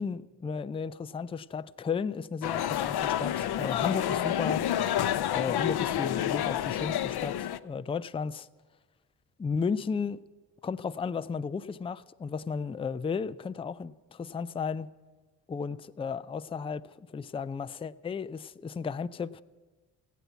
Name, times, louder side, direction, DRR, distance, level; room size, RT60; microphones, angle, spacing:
voice 1, 0.0-4.6 5.3-8.5 9.4-10.2 10.6-14.9 15.5-19.4, left 5 dB, 10° left, 13 dB, 0.4 m, -34 dB
sound 1, 2.4-7.6, left 11 dB, 50° left, 0.7 m, -29 dB
15.5 x 9.2 x 8.1 m, 1.3 s
hypercardioid pair, 40°, 49 cm